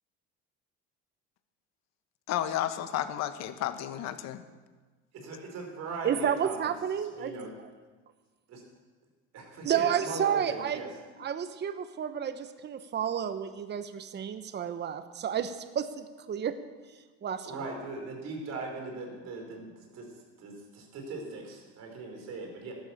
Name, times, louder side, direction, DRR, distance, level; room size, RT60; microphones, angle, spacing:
voice 1, 2.3-4.4, left 11 dB, 65° left, 10 dB, 1.2 m, -32 dB
voice 2, 5.1-6.6 7.0-7.5 8.5-8.6 9.3-10.9 17.4-20.1 20.4-22.7, right 3 dB, 60° right, 2 dB, 4.5 m, -39 dB
voice 3, 6.0-7.3 9.6-10.8 11.2-16.5 17.2-17.5, right 8 dB, 35° right, 10 dB, 1.0 m, -31 dB
13.5 x 11.5 x 7.2 m, 1.3 s
supercardioid pair, 100°, 30 cm